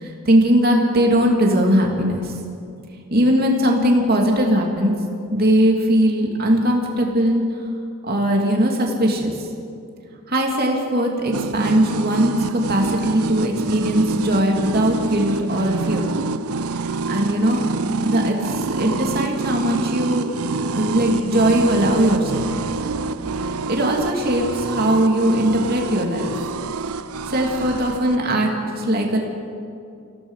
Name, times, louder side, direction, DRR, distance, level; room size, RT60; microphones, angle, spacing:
voice 1, 0.0-2.3 3.1-5.0 5.3-7.5 8.0-9.3 10.3-16.1 17.1-17.6 18.0-20.3 20.7-22.5 23.7-26.3 27.3-29.2, equal, 45° right, 1 dB, 3.0 m, -19 dB
sound 1, 11.3-28.2, right 3 dB, 90° right, 0.6 m, -27 dB
27.5 x 17.0 x 5.8 m, 2.5 s
head